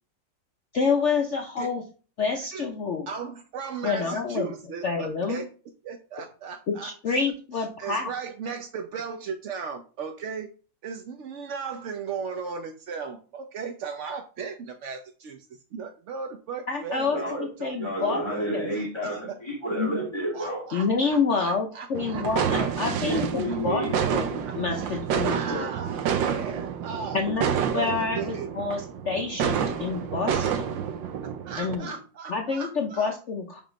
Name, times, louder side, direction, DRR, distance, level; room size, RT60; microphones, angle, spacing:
voice 1, 0.7-1.8 2.2-3.1 3.8-4.5 4.8-5.4 6.7-8.1 16.7-17.2 17.6-18.2 18.5-18.7 19.8-20.0 20.7-23.8 24.1-25.7 27.1-30.8 31.6-31.9 32.3-33.6, left 5 dB, 50° left, 2 dB, 0.9 m, -28 dB
voice 2, 3.1-5.5 5.8-7.2 7.8-10.5 10.8-15.5 15.7-17.3 17.6-18.5 19.0-19.2 20.3-22.6 23.1-23.2 24.7-28.5 31.4-33.1, right 6 dB, 65° right, 5 dB, 0.7 m, -36 dB
voice 3, 17.1-17.5 17.8-20.6 22.6-22.7 23.0-24.0, right 1 dB, 15° left, -4 dB, 3.0 m, -30 dB
sound 1, 22.0-31.8, right 8 dB, 90° right, 1.5 m, -29 dB
7.0 x 3.6 x 5.1 m, 0.37 s
omnidirectional pair, 2.0 m